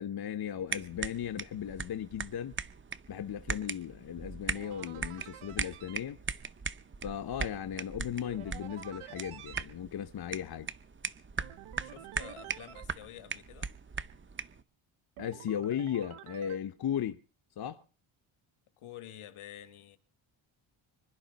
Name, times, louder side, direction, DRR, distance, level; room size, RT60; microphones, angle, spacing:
voice 1, 0.0-2.6 3.1-6.2 7.0-10.7 15.2-17.2 17.6-17.8, left 9 dB, 50° left, 0.9 m, -36 dB
sound 1, 0.7-14.6, right 5 dB, 25° right, 0.8 m, -40 dB
sound 2, 4.5-6.0 8.2-9.6 11.4-12.8 15.2-16.6, right 11 dB, 90° right, 1.4 m, -49 dB
voice 2, 11.8-13.7 18.8-20.0, left 11 dB, 80° left, 2.0 m, -49 dB
25.5 x 11.5 x 4.1 m
cardioid pair, 115°, 49 cm